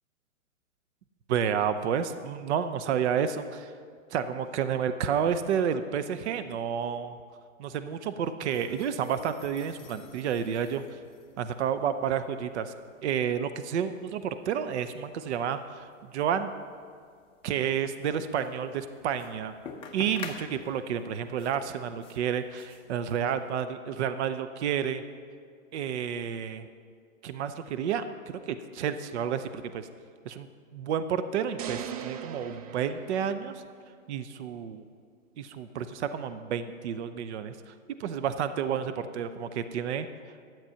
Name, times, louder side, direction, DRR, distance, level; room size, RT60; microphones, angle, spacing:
voice 1, 1.3-3.7 4.1-7.2 7.6-11.0 11.4-12.7 13.0-16.5 17.4-19.5 19.9-25.0 25.7-26.7 27.2-29.9 30.2-33.6 34.1-34.8 35.4-37.7 38.0-40.1, right 8 dB, 55° right, 10 dB, 0.7 m, -30 dB
sound 1, 8.5-23.6, left 5 dB, 15° left, 0.7 m, -50 dB
sound 2, 31.6-33.9, right 8 dB, 30° right, 0.4 m, -40 dB
12.0 x 9.0 x 5.7 m, 2.1 s
hypercardioid pair, 125°, 40 cm